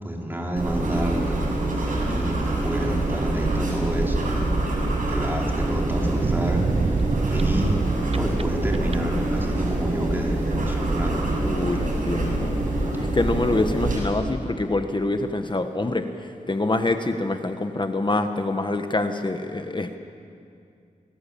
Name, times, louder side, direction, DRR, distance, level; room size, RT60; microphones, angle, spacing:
voice 1, 0.0-1.4 1.7-4.5 5.1-7.0 7.3-7.8 8.1-11.3, right 1 dB, 15° right, -1 dB, 4.7 m, -29 dB
sound 1, 0.6-14.0, right 2 dB, 85° right, 7.1 m, -25 dB
sound 2, 6.2-8.4 8.7-9.2, right 5 dB, 50° right, 0.5 m, -26 dB
voice 2, 11.4-12.6 13.0-20.0, left 2 dB, 35° left, 7 dB, 1.5 m, -25 dB
26.5 x 19.0 x 8.7 m, 2.4 s
wide cardioid pair, 75°, 14 cm